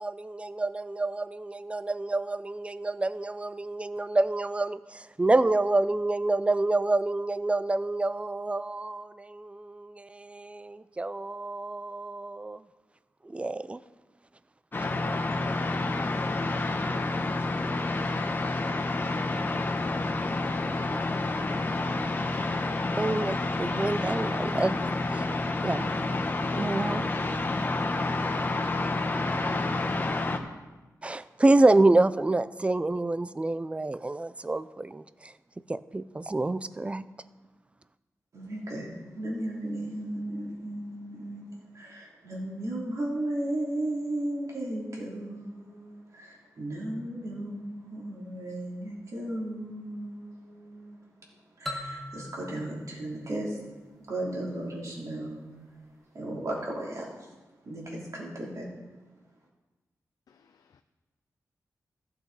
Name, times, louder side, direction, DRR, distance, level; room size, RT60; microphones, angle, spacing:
voice 1, 0.0-12.6 13.2-13.8 23.0-24.8 25.1-25.2 25.6-25.9 26.6-27.1 31.0-35.3 35.7-37.1, right 2 dB, 20° right, 0.4 m, -27 dB
sound 1, 14.7-30.4, left 2 dB, 35° left, 1.0 m, -29 dB
voice 2, 38.3-51.0 51.6-53.6 54.1-55.4 56.1-57.3 57.6-58.7, right 1 dB, 60° right, 3.2 m, -35 dB
sound 2, 51.7-54.4, left 1 dB, ahead, 1.0 m, -41 dB
voice 3, 60.3-60.8, left 6 dB, 90° left, 0.5 m, -63 dB
15.5 x 8.4 x 4.1 m
wide cardioid pair, 105°, 6 cm